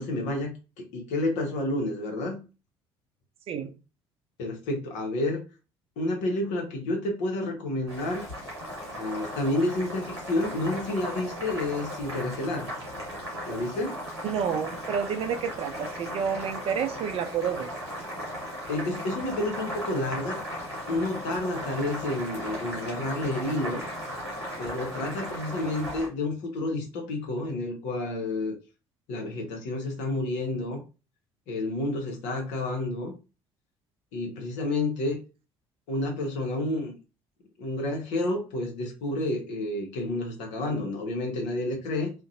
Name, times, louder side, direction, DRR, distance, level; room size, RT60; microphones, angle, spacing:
voice 1, 0.0-2.4 4.4-5.4 6.0-8.3 9.0-12.7 13.5-14.0 18.7-20.4 20.9-23.8 24.6-28.6 29.1-30.8 31.5-33.1 34.1-35.2 35.9-36.9 37.6-42.1, left 2 dB, 60° left, 0.8 m, -30 dB
Boiling, 7.9-26.1, equal, 90° right, 0.9 m, -37 dB
voice 2, 14.2-17.7, right 7 dB, 45° right, 0.4 m, -29 dB
2.5 x 2.1 x 2.6 m
figure-of-eight pair, 55°, 14 cm